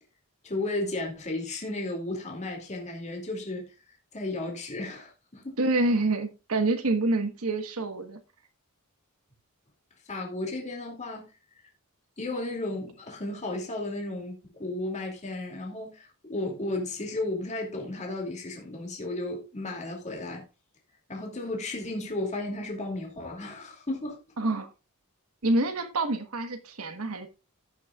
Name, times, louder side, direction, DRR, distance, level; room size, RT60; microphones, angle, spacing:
voice 1, 0.4-3.7 4.1-5.6 10.1-11.3 12.2-20.5 21.1-24.2, left 2 dB, 35° left, 2.5 m, -34 dB
voice 2, 5.6-8.2 24.4-24.7 25.4-27.3, right 2 dB, 70° right, 1.3 m, -27 dB
17.0 x 6.3 x 2.4 m
head